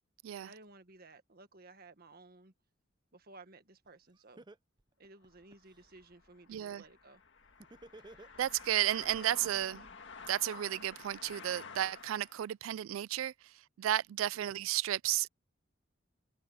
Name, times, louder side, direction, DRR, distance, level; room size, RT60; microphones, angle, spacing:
voice 1, 0.4-2.5 3.1-4.4 5.0-7.2 8.0-8.2 14.3-14.6, right 2 dB, 50° right, 1.6 m, -56 dB
Laughter, 3.8-3.9 4.4-5.8 7.6-8.8, right 2 dB, 20° right, 0.6 m, -53 dB
sound 1, 5.3-12.4, left 5 dB, 65° left, 1.9 m, -51 dB
voice 2, 6.5-6.8 8.4-9.9 10.3-15.3, right 12 dB, 90° right, 0.3 m, -33 dB
head